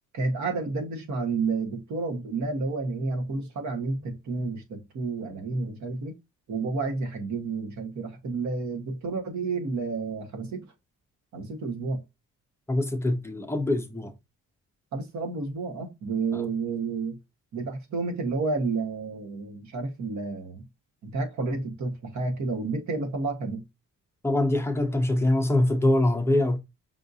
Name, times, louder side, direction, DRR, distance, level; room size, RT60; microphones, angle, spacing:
voice 1, 0.1-6.2 6.5-10.7 11.3-12.0 14.9-17.2 17.5-20.6 21.0-23.6, right 3 dB, 60° right, 1.2 m, -30 dB
voice 2, 12.7-14.1 16.3-16.5 24.2-26.6, left 1 dB, 10° left, 0.5 m, -24 dB
5.5 x 2.5 x 2.6 m
wide cardioid pair, 180°, 32 cm